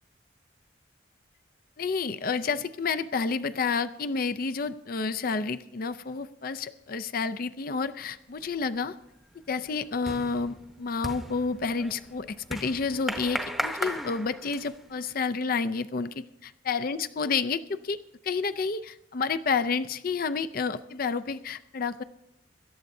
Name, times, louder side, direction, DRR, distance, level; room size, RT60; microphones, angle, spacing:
voice 1, 1.8-9.0 9.5-18.0 18.2-22.0, left 4 dB, 45° left, 11 dB, 0.4 m, -30 dB
sound 1, 8.4-8.8 9.1-14.9, equal, ahead, 0.8 m, -36 dB
25.0 x 12.5 x 2.7 m, 0.84 s
head